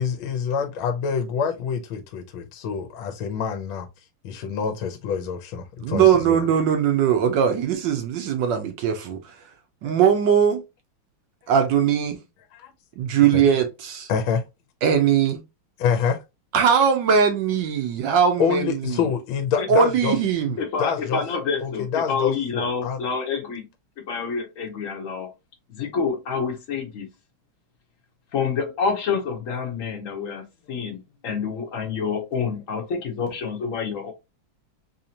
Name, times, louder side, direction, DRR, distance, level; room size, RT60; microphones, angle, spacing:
voice 1, 0.0-3.9 4.2-6.5 9.8-9.9 11.4-11.5 12.5-12.7 13.3-13.4 14.1-14.4 15.8-16.2 18.4-20.2 20.4-21.2 21.6-23.0, left 6 dB, 75° left, 1.3 m, -26 dB
voice 2, 5.8-9.3 9.8-10.6 11.5-12.2 13.0-14.1 14.8-15.4 16.5-19.0 19.7-20.6, right 7 dB, 70° right, 1.1 m, -20 dB
voice 3, 20.6-23.6 24.1-25.3 25.7-27.1 28.3-34.1, left 5 dB, 55° left, 0.9 m, -28 dB
4.2 x 2.7 x 2.8 m
omnidirectional pair, 2.4 m